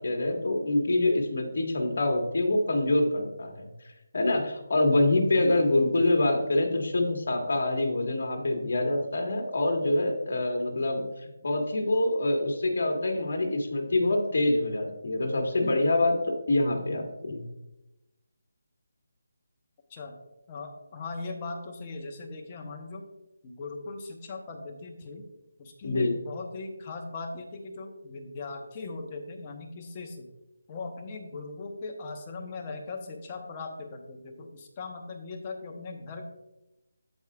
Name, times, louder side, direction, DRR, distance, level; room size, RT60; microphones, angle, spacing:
voice 1, 0.0-3.7 4.1-11.1 11.4-16.2 16.5-17.5 25.8-26.2, left 2 dB, 60° left, 2 dB, 1.7 m, -25 dB
voice 2, 20.5-23.0 23.4-25.2 25.6-30.3 30.7-36.3, left 3 dB, 20° left, 2 dB, 0.9 m, -39 dB
14.5 x 4.8 x 2.4 m, 0.96 s
figure-of-eight pair, 170°, 0 cm